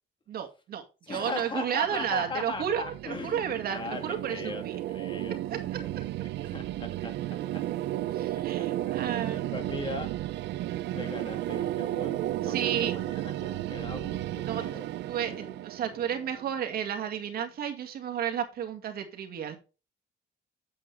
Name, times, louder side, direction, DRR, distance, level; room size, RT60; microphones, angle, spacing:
voice 1, 0.3-4.8 5.5-5.6 8.1-9.5 12.4-12.9 14.4-14.6 15.1-19.6, right 9 dB, 60° right, 4 dB, 2.1 m, -32 dB
voice 2, 1.0-4.6 4.9-5.4 5.8-5.9 6.4-7.1 7.5-7.6 9.5-10.1 10.9-14.8 15.1-15.6, left 3 dB, 25° left, 6 dB, 2.4 m, -39 dB
sound 1, 1.8-16.9, right 14 dB, 85° right, 0.6 m, -34 dB
8.7 x 8.4 x 3.4 m, 0.31 s
cardioid pair, 150°, 18 cm